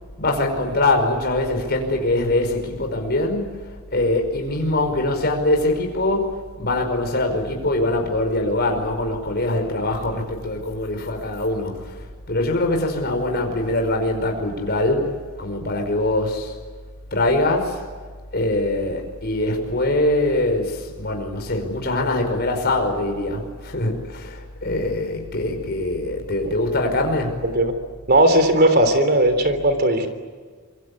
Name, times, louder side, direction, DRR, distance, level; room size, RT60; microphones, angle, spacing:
voice 1, 0.2-15.1 15.4-16.5 17.1-17.8 18.3-27.4, left 2 dB, 50° left, 3 dB, 5.3 m, -23 dB
voice 2, 28.1-30.1, right 1 dB, 45° right, 9 dB, 3.4 m, -17 dB
26.5 x 24.5 x 8.6 m, 1.5 s
head